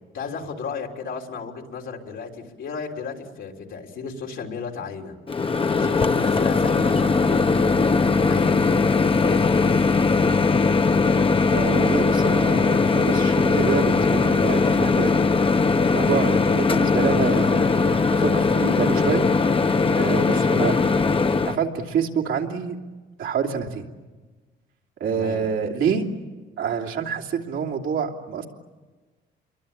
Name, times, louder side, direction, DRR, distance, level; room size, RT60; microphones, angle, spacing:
voice 1, 0.1-5.2 5.7-7.9 8.1-9.6 25.1-25.4, left 5 dB, 75° left, 1 dB, 3.5 m, -34 dB
Microwave oven, 5.3-21.6, left 4 dB, 25° left, 1.0 m, -20 dB
voice 2, 11.5-15.1 15.9-19.2 20.0-20.7 21.5-22.8 23.2-23.9 25.0-26.1 26.6-28.5, right 6 dB, 80° right, 0 dB, 2.8 m, -27 dB
27.5 x 23.5 x 8.7 m, 1.3 s
cardioid pair, 90°, 20 cm